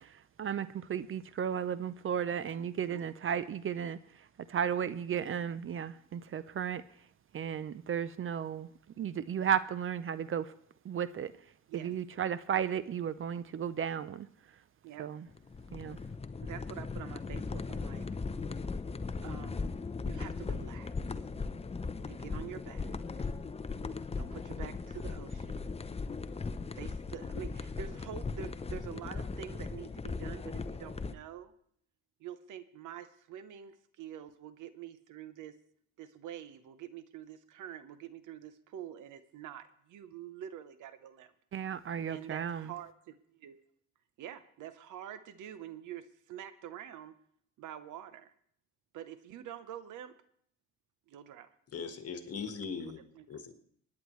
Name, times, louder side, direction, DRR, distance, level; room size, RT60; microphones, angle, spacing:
voice 1, 0.0-6.8 7.3-8.7 9.0-10.5 10.8-11.3 11.7-14.3 15.0-15.3 15.7-16.0 41.5-42.7, right 8 dB, 45° right, 0.6 m, -34 dB
sound 1, 15.3-31.1, left 4 dB, 20° left, 0.6 m, -38 dB
voice 2, 16.4-18.1 19.2-19.8 20.0-20.9 22.1-23.0 24.1-25.7 26.7-31.5 32.2-35.5 36.0-41.3 42.1-43.6 44.2-47.1 47.6-48.3 48.9-50.1 51.1-51.5 52.8-53.2, right 10 dB, 80° right, 0.9 m, -46 dB
voice 3, 51.7-53.0 53.3-53.5, left 5 dB, 50° left, 1.6 m, -39 dB
24.5 x 9.7 x 3.2 m
cardioid pair, 90°, 30 cm